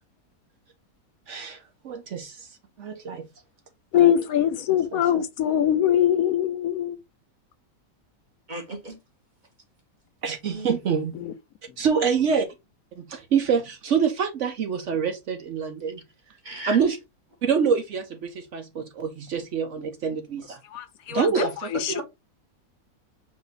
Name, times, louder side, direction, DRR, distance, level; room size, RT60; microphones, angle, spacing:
voice 1, 1.3-2.5 2.8-3.2 4.0-4.1 4.9-5.2 10.2-11.1 11.8-12.5 13.0-16.0 16.7-17.0 17.4-20.6 21.1-21.5, right 6 dB, 60° right, 1.0 m, -26 dB
voice 2, 3.9-7.0 11.1-11.3 20.7-22.0, left 10 dB, 75° left, 1.0 m, -23 dB
voice 3, 8.5-9.0 10.5-10.7 16.4-16.8 21.3-22.0, right 1 dB, 35° right, 1.2 m, -33 dB
5.1 x 2.6 x 3.9 m
omnidirectional pair, 1.6 m